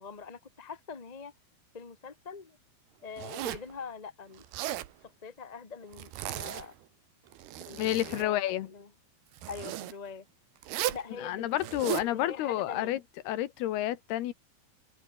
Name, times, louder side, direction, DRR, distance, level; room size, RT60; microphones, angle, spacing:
voice 1, 0.0-1.3 1.7-2.6 3.0-4.4 5.0-6.7 7.6-8.9 9.4-10.2 10.9-12.9, left 5 dB, 45° left, 0.5 m, -44 dB
Zipper (clothing), 3.2-3.7 4.4-4.9 5.9-6.8 7.3-8.3 9.4-9.9 10.6-11.1 11.6-12.1, right 13 dB, 85° right, 3.4 m, -36 dB
voice 2, 7.8-8.7 11.2-13.0 13.2-14.3, left 14 dB, 85° left, 3.4 m, -30 dB
open air
omnidirectional pair, 4.4 m